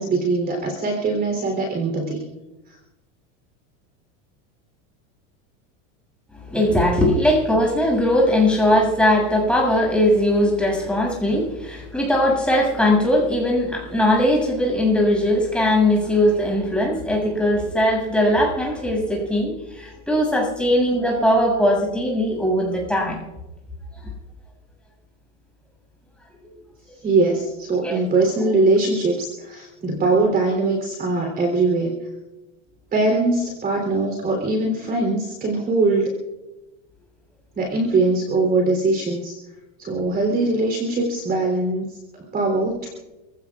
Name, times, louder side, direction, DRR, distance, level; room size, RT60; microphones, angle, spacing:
voice 1, 0.0-2.3 27.0-31.9 32.9-36.1 37.5-39.4 39.8-42.9, right 3 dB, 25° right, 2 dB, 3.6 m, -21 dB
voice 2, 6.5-23.2 26.4-26.5 27.8-28.0, left 1 dB, 5° left, -1 dB, 7.4 m, -20 dB
28.5 x 17.0 x 2.5 m, 1.0 s
supercardioid pair, 135°, 36 cm